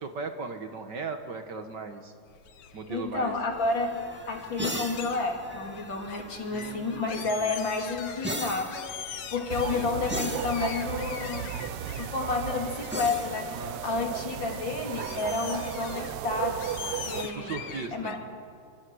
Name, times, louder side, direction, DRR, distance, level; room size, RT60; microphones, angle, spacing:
voice 1, 0.0-2.1 2.7-3.3 6.5-7.6 13.5-14.2 17.2-18.3, right 4 dB, 55° right, 7 dB, 1.9 m, -38 dB
sound 1, 2.3-18.2, left 9 dB, 80° left, 2.0 m, -44 dB
voice 2, 2.9-11.5 12.0-17.6 17.9-18.2, left 3 dB, 55° left, 2 dB, 3.6 m, -31 dB
sound 2, 3.5-14.7 16.2-17.8, equal, 5° right, 1.6 m, -41 dB
sound 3, 9.5-17.2, right 10 dB, 85° right, 1.7 m, -35 dB
26.5 x 25.0 x 6.4 m, 2.4 s
omnidirectional pair, 2.4 m